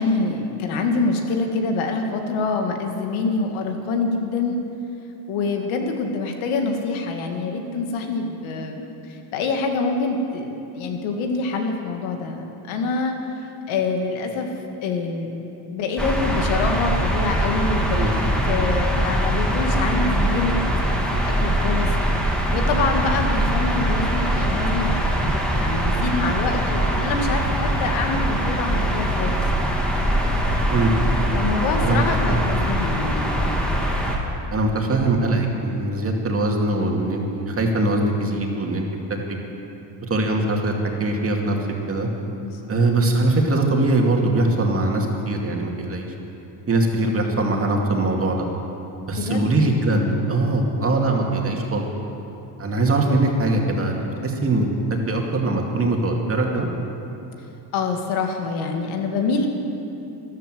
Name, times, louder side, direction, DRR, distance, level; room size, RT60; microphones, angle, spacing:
voice 1, 0.0-4.6 5.3-14.5 14.8-15.3 15.7-18.1 18.5-20.6 21.1-21.9 22.5-29.7 31.3-33.5 42.4-42.7 49.1-49.5 50.0-50.3 57.7-59.5, left 4 dB, 85° left, 3 dB, 2.1 m, -26 dB
sound 1, 16.0-34.2, right 1 dB, ahead, 2.1 m, -22 dB
voice 2, 31.8-32.4 34.5-38.8 39.3-39.4 40.1-40.7 41.0-41.6 41.9-42.1 42.7-46.1 46.7-48.5 49.1-50.0 50.3-51.8 52.6-54.7 55.1-56.7, right 2 dB, 30° right, 1 dB, 2.3 m, -21 dB
14.0 x 12.0 x 7.8 m, 2.9 s
cardioid pair, 120°, 47 cm